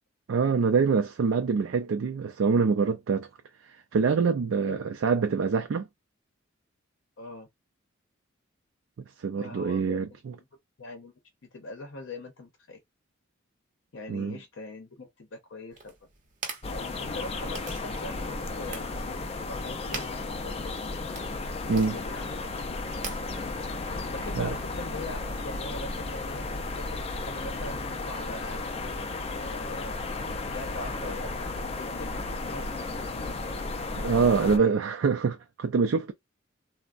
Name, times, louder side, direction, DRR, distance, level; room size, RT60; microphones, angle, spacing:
voice 1, 0.3-3.3 3.9-5.9 9.2-10.3 14.1-14.4 21.7-22.0 24.3-24.5 34.0-36.1, right 5 dB, 75° right, 0.4 m, -25 dB
voice 2, 7.2-7.5 9.4-10.1 10.8-11.1 11.5-12.8 13.9-15.9 16.7-20.7 21.5-22.3 24.0-26.4 26.7-29.0 29.3-30.0 30.5-33.3 34.2-34.7, left 2 dB, 70° left, 0.7 m, -42 dB
sound 1, 15.7-24.7, right 4 dB, 40° right, 0.7 m, -45 dB
sound 2, 16.6-34.6, left 3 dB, 30° left, 0.4 m, -34 dB
3.3 x 2.0 x 2.4 m
head